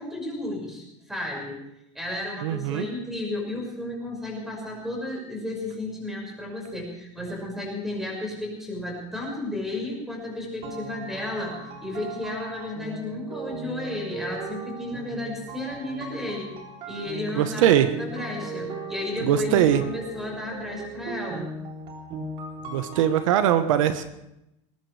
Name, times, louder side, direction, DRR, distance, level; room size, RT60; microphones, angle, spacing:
voice 1, 0.0-1.6 1.9-16.5 16.9-21.5, left 1 dB, ahead, -1 dB, 5.8 m, -33 dB
voice 2, 2.4-2.9 17.4-17.9 19.2-19.8 22.7-24.0, right 11 dB, 80° right, 9 dB, 1.3 m, -21 dB
sound 1, 10.6-23.4, right 3 dB, 35° right, 3.5 m, -38 dB
21.0 x 19.0 x 3.4 m, 0.83 s
supercardioid pair, 160°, 16 cm